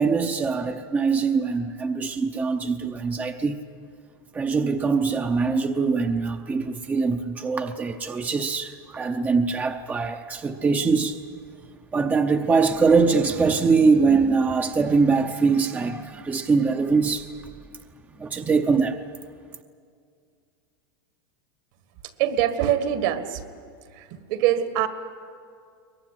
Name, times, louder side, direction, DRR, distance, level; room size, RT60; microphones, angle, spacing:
voice 1, 0.0-3.6 4.3-11.2 11.9-17.3 18.2-19.0, right 4 dB, 15° right, 0.8 m, -22 dB
voice 2, 22.2-23.4 24.3-24.9, right 11 dB, 60° right, 1.9 m, -23 dB
22.5 x 20.0 x 9.9 m
supercardioid pair, 145°, 12 cm